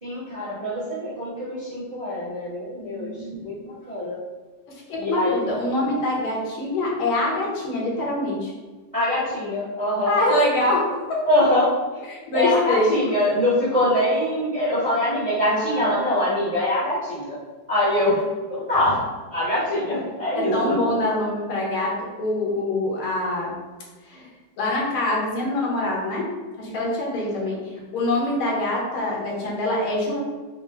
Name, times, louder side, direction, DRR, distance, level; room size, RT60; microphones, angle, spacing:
voice 1, 0.0-3.1 3.4-4.2 5.0-5.4 8.9-10.2 11.2-11.7 12.3-17.4 17.7-18.2 18.5-19.0 19.3-20.7, left 1 dB, 25° right, -10 dB, 0.8 m, -23 dB
voice 2, 2.8-3.5 4.7-8.5 10.0-11.2 12.1-13.0 15.5-15.9 20.3-23.5 24.1-24.3 24.6-26.3 26.6-30.2, left 1 dB, 75° left, -3 dB, 1.7 m, -25 dB
4.5 x 2.0 x 3.2 m, 1.3 s
omnidirectional pair, 2.4 m